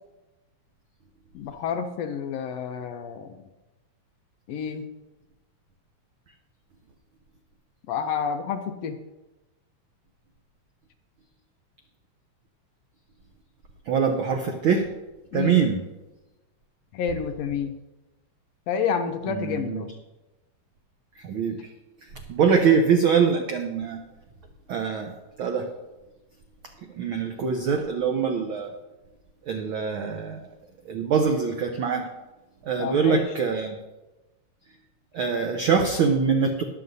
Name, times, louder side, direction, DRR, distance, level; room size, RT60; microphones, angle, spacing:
voice 1, 1.3-3.4 4.5-4.9 7.9-9.0 15.3-15.7 16.9-17.8 18.7-19.9 32.8-33.3, left 7 dB, 75° left, 7 dB, 1.7 m, -29 dB
voice 2, 13.9-14.9 15.3-15.8 19.3-19.9 21.2-21.6 22.3-24.0 24.7-25.1 25.4-25.7 27.0-28.7 29.5-30.4 30.9-32.1 32.7-33.8 35.1-36.6, right 6 dB, 85° right, 4 dB, 1.1 m, -23 dB
22.0 x 7.8 x 2.7 m, 1.1 s
omnidirectional pair, 3.3 m